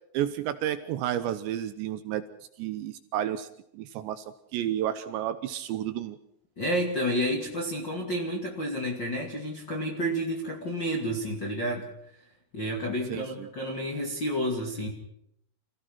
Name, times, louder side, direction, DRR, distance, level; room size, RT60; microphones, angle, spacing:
voice 1, 0.1-2.2 2.6-3.5 3.7-4.2 4.5-6.2 13.1-13.5, right 11 dB, 75° right, 11 dB, 2.8 m, -31 dB
voice 2, 6.6-11.9 12.5-14.9, equal, 35° left, -1 dB, 1.8 m, -30 dB
28.0 x 16.0 x 6.0 m, 0.75 s
omnidirectional pair, 5.7 m